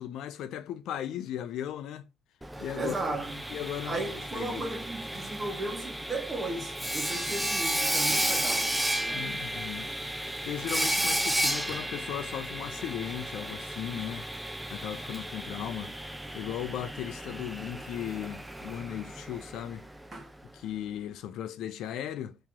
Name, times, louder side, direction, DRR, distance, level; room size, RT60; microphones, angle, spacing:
voice 1, 0.0-2.0 2.6-3.2 3.5-4.0 4.3-4.6 9.1-9.9 10.4-14.3 14.7-15.9 16.3-19.9 20.5-22.4, left 10 dB, 75° left, 0.4 m, -37 dB
Sawing, 2.4-20.2, right 1 dB, 5° right, 0.4 m, -33 dB
voice 2, 2.7-3.4 3.9-9.3 20.1-20.3, right 2 dB, 30° right, 1.3 m, -36 dB
2.9 x 2.8 x 3.6 m
cardioid pair, 100°, 0 cm